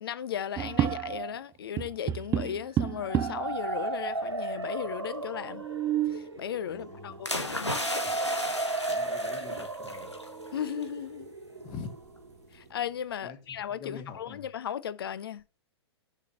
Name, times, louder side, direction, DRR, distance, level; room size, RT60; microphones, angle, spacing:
voice 1, 0.0-5.7 6.1-7.7 10.5-11.3 12.5-15.4, left 9 dB, 60° left, 0.7 m, -36 dB
sound 1, 0.6-1.4 1.8-3.6 4.3-4.4 4.6-4.7 5.4-6.3 8.0-8.2 8.7-9.1 9.6-9.7 10.2-11.1, right 11 dB, 20° right, 0.4 m, -31 dB
sound 2, 2.8-12.7, right 3 dB, 80° right, 1.5 m, -36 dB
voice 2, 6.7-7.2 8.9-10.1 11.6-11.9 13.2-14.4, left 6 dB, 35° left, 2.0 m, -44 dB
sound 3, 7.3-10.3 10.6-10.8, left 1 dB, 90° left, 1.8 m, -34 dB
6.7 x 5.5 x 6.4 m
figure-of-eight pair, 105°, 14 cm